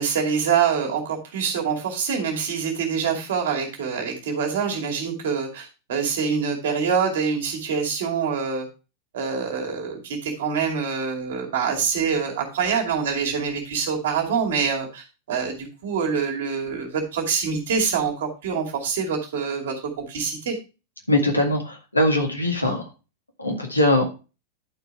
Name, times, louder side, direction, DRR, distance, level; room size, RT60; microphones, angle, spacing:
voice 1, 0.0-8.7 9.1-20.6 22.6-22.8, right 6 dB, 60° right, 2 dB, 2.5 m, -25 dB
voice 2, 21.1-22.8 23.4-24.0, left 1 dB, 85° left, 2 dB, 2.1 m, -21 dB
11.0 x 4.7 x 4.6 m, 0.31 s
figure-of-eight pair, 90°, 0 cm